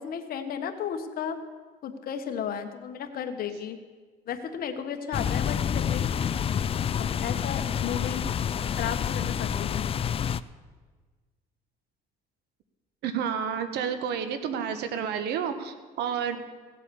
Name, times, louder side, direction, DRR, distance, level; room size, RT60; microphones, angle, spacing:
voice 1, 0.0-1.4 1.8-3.8 4.3-6.1 7.0-8.2 8.7-9.8, left 8 dB, 60° left, 7 dB, 1.4 m, -34 dB
sound 1, 5.1-10.4, left 8 dB, 35° left, 0.4 m, -28 dB
voice 2, 13.0-16.4, right 7 dB, 80° right, 9 dB, 1.4 m, -30 dB
17.0 x 8.2 x 7.1 m, 1.4 s
cardioid pair, 110°, 17 cm